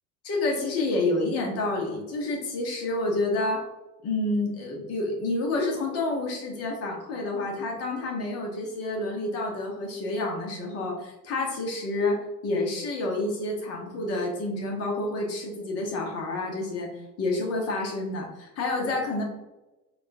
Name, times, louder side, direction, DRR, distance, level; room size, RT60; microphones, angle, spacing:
voice 1, 0.2-3.6 4.0-16.9 17.2-19.2, left 2 dB, 30° left, 0 dB, 1.0 m, -29 dB
4.0 x 2.4 x 2.7 m, 1.0 s
figure-of-eight pair, 75°, 46 cm